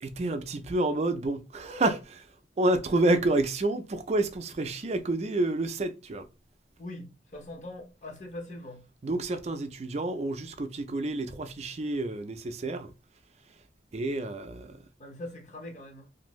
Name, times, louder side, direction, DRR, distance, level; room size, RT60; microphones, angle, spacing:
voice 1, 0.0-2.2 2.6-6.2 9.0-12.9 13.9-14.8, right 2 dB, 35° right, 0.4 m, -29 dB
voice 2, 6.8-8.9 15.0-16.1, left 1 dB, 40° left, 0.7 m, -42 dB
2.6 x 2.6 x 3.0 m
head